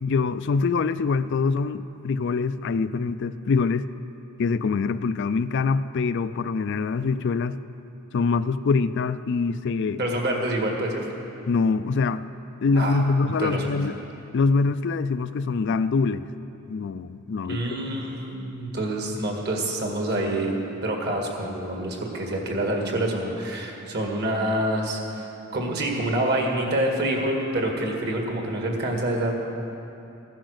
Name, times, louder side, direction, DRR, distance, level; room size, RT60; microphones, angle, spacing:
voice 1, 0.0-3.8 4.4-7.6 8.1-10.0 11.5-12.2 12.6-13.9 14.3-16.2 16.7-17.6, left 4 dB, 55° left, 12 dB, 0.4 m, -24 dB
voice 2, 10.0-11.0 12.7-13.0 13.4-13.7 17.5-20.5 20.8-25.3 25.5-29.3, right 1 dB, 50° right, 1 dB, 2.0 m, -27 dB
15.0 x 10.0 x 6.6 m, 2.8 s
head